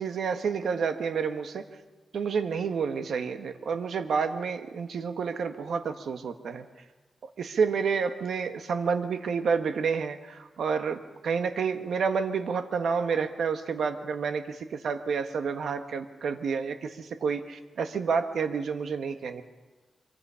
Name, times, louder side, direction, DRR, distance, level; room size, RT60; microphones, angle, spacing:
voice 1, 0.0-1.6 2.1-6.7 7.4-19.4, right 5 dB, 80° right, 8 dB, 1.4 m, -29 dB
24.5 x 24.0 x 5.7 m, 1.2 s
wide cardioid pair, 140°, 0 cm